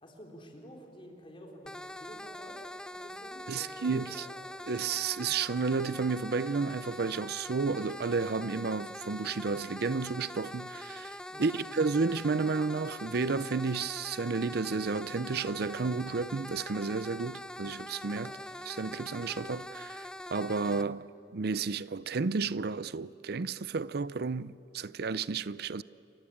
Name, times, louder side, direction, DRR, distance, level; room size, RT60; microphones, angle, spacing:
voice 1, 0.0-2.6 2.9-4.5 11.3-11.5 18.2-18.4, equal, 30° left, 3.8 m, -50 dB
sound 1, 1.7-20.8, left 1 dB, 5° left, 0.5 m, -43 dB
voice 2, 3.5-4.3 4.7-18.3 18.7-25.8, right 4 dB, 60° right, 0.5 m, -32 dB
29.0 x 24.0 x 8.6 m
head